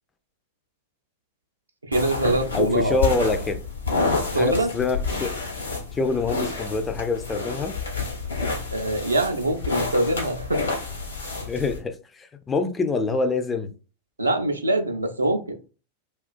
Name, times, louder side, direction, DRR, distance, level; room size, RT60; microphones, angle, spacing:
voice 1, 1.8-3.0 4.3-4.7 8.7-10.7 14.2-15.6, right 2 dB, 80° right, 0.4 m, -24 dB
sound 1, 1.9-11.8, left 3 dB, 80° left, 0.8 m, -29 dB
voice 2, 2.5-3.6 4.3-5.3 5.9-7.8 11.5-13.7, left 3 dB, 20° left, 0.3 m, -25 dB
2.4 x 2.2 x 2.4 m
figure-of-eight pair, 90°, 0 cm